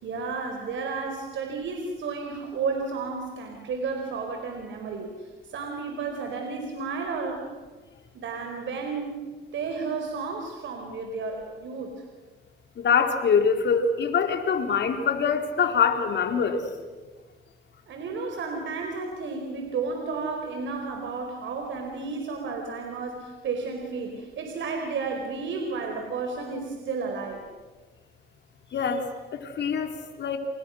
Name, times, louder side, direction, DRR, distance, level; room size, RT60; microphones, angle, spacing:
voice 1, 0.0-7.5 8.1-9.1 9.5-12.0 17.9-27.4, right 4 dB, 70° right, 3 dB, 4.6 m, -32 dB
voice 2, 12.8-16.6 28.7-30.4, left 6 dB, 60° left, 5 dB, 4.0 m, -24 dB
29.0 x 28.0 x 6.5 m, 1.3 s
cardioid pair, 90°, 20 cm